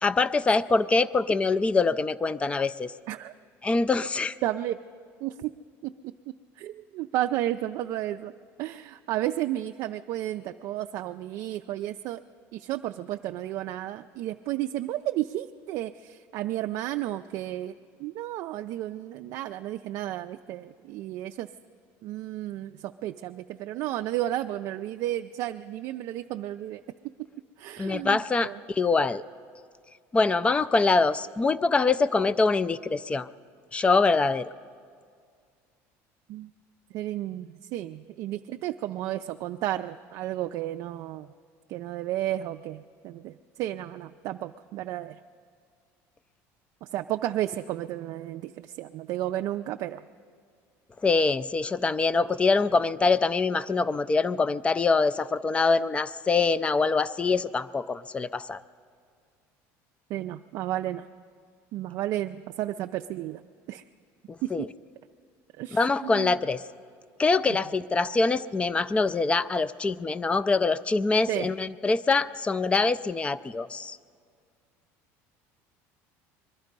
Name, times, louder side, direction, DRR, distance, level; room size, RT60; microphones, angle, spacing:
voice 1, 0.0-2.9 3.6-4.3 27.8-29.2 30.1-33.3 33.7-34.5 51.0-58.6 64.3-64.7 65.7-66.6 67.2-74.0, left 3 dB, 15° left, 17 dB, 0.4 m, -24 dB
voice 2, 4.4-4.8 5.2-5.5 5.8-8.3 8.6-12.2 12.5-17.7 18.0-21.5 22.0-27.1 27.6-28.6 36.3-36.5 36.9-41.3 41.7-45.2 46.8-50.1 60.1-61.1 61.7-63.4 63.7-63.8 64.4-64.7 65.6-66.3 67.5-67.6 71.3-71.5, right 14 dB, 55° right, 7 dB, 0.3 m, -32 dB
22.0 x 12.5 x 5.3 m, 2.1 s
cardioid pair, 125°, 7 cm